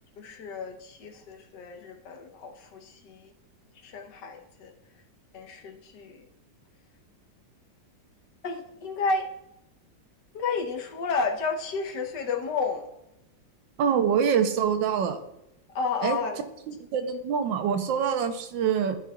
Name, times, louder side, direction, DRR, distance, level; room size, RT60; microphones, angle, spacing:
voice 1, 0.2-3.3 3.8-4.7 5.3-6.2 8.4-9.3 10.3-12.9 15.7-16.4, left 4 dB, 70° left, 3 dB, 1.5 m, -31 dB
voice 2, 13.8-15.2 16.0-16.2 16.7-19.0, right 7 dB, 90° right, 8 dB, 1.4 m, -25 dB
13.5 x 4.6 x 2.3 m, 0.83 s
omnidirectional pair, 2.0 m